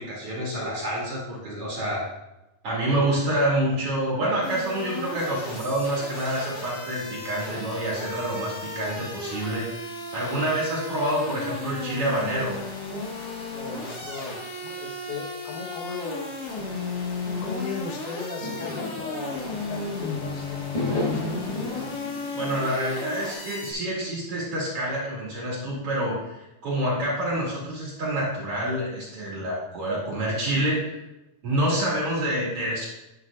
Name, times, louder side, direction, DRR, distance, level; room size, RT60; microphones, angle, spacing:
voice 1, 0.0-2.0 2.6-9.6 10.1-12.6 22.3-31.0 31.4-32.9, right 1 dB, 40° right, -5 dB, 3.0 m, -27 dB
sound 1, 4.4-23.7, left 3 dB, 50° left, 1.1 m, -34 dB
voice 2, 13.2-16.3 16.7-22.0, left 4 dB, 90° left, 1 dB, 3.2 m, -37 dB
sound 2, 18.4-20.1 20.7-23.0, left 3 dB, 30° left, 0.7 m, -33 dB
11.0 x 7.8 x 2.4 m, 0.94 s
omnidirectional pair, 4.3 m